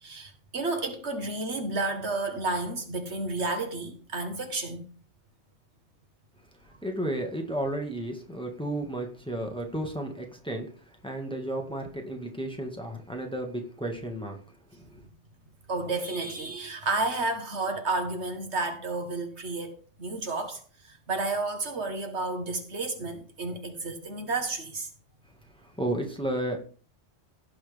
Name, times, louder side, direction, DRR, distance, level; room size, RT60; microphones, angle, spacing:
voice 1, 0.0-4.9 15.7-20.6 20.9-24.9, right 3 dB, 70° right, 1.7 m, -31 dB
voice 2, 6.8-14.4 14.7-15.0 25.6-26.6, right 1 dB, 5° left, 1.8 m, -33 dB
17.0 x 6.0 x 3.5 m
omnidirectional pair, 1.2 m